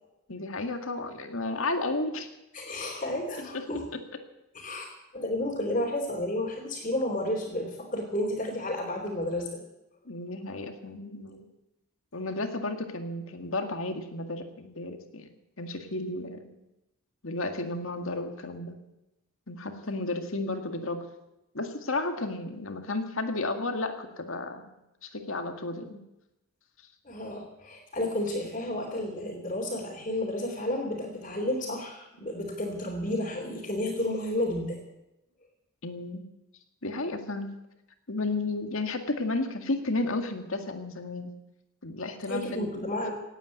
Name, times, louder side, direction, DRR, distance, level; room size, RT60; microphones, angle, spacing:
voice 1, 0.3-2.3 3.4-3.6 10.1-11.5 12.1-15.3 15.6-16.5 17.2-18.8 19.5-21.0 21.5-24.7 25.0-26.0 35.8-36.2 36.8-37.5 38.1-41.3 41.8-43.0, left 2 dB, 65° left, 6 dB, 2.0 m, -33 dB
voice 2, 2.5-3.8 4.5-9.6 27.0-34.8 42.3-43.1, left 1 dB, 30° left, -4 dB, 3.3 m, -31 dB
18.0 x 9.2 x 8.5 m, 0.93 s
head